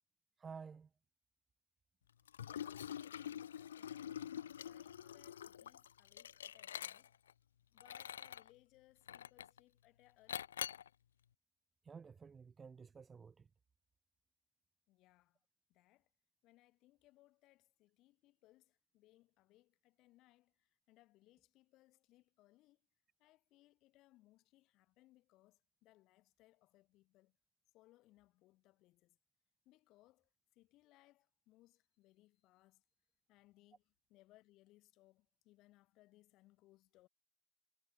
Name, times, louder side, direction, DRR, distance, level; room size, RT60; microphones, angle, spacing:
voice 1, 0.4-0.9 11.8-13.5, right 5 dB, 15° right, 0.4 m, -52 dB
Liquid, 2.3-7.3 7.8-8.5 9.1-9.6 10.3-10.9, left 9 dB, 65° left, 0.8 m, -46 dB
voice 2, 2.4-4.2 4.5-7.2 7.7-10.5 14.9-15.4 15.7-16.1 16.4-22.8 23.2-27.4 27.7-29.2 29.6-32.8 33.3-37.1, left 18 dB, 35° left, 6.3 m, -69 dB
figure-of-eight pair, 90°, 0 cm